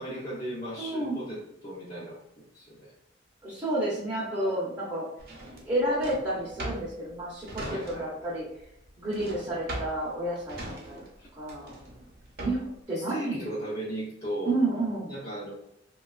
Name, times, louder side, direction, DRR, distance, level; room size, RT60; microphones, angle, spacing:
voice 1, 0.0-2.2 2.5-2.9 7.7-8.3 11.2-11.3 12.9-14.6 15.1-15.5, right 1 dB, 40° left, -8 dB, 0.7 m, -36 dB
voice 2, 0.8-1.2 3.4-5.1 5.5-8.5 9.0-10.7 11.3-11.8 12.4-13.4 14.4-15.1, right 1 dB, 20° right, -8 dB, 0.8 m, -30 dB
Drawer open or close, 5.2-8.3 8.6-12.8, right 1 dB, 55° right, 0.7 m, -40 dB
3.4 x 2.3 x 2.3 m, 0.82 s
head